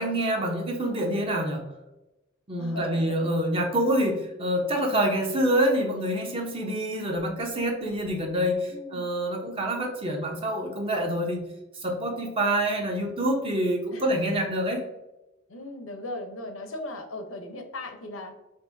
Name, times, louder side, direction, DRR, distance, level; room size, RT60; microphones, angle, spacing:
voice 1, 0.0-1.7 2.5-11.4 11.8-14.8, right 1 dB, 30° right, 1 dB, 0.8 m, -26 dB
voice 2, 2.6-3.2 8.7-9.1 13.9-14.4 15.5-18.3, left 2 dB, 85° left, 5 dB, 0.7 m, -38 dB
5.3 x 2.7 x 2.6 m, 0.96 s
head